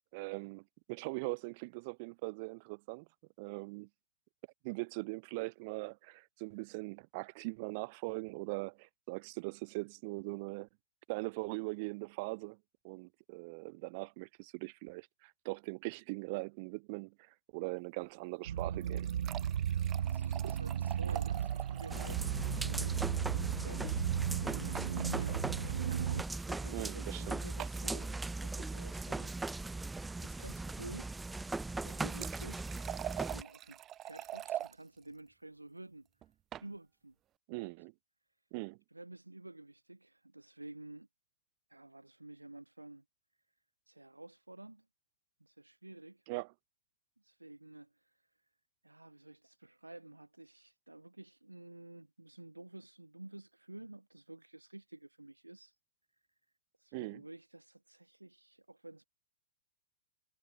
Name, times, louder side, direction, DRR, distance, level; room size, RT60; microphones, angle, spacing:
voice 1, 0.1-3.1 3.4-3.9 4.6-10.7 11.1-12.6 12.8-19.1 26.7-27.4 37.5-37.9 38.5-38.8 46.3-46.5 56.9-57.2, right 27 dB, 45° right, 2.6 m, -41 dB
sound 1, 18.5-26.2, right 9 dB, 60° right, 0.3 m, -35 dB
sound 2, 18.6-22.3 22.6-22.7 22.9-23.0 24.7-25.1 26.1-26.2 27.6-27.9 31.6-34.7 36.2-36.7, right 12 dB, 25° right, 1.4 m, -44 dB
voice 2, 19.8-24.1 24.4-25.5 25.9-29.3 30.2-31.1 31.8-32.7 33.1-36.1 36.6-37.1 37.5-37.7 38.9-41.1 41.7-43.0 43.9-44.9 45.4-46.3 47.2-48.3 48.8-55.8 56.8-59.1, right 2 dB, 90° right, 4.4 m, -51 dB
sound 3, 21.9-33.4, right 3 dB, 5° right, 0.7 m, -39 dB
figure-of-eight pair, 105°, 0 cm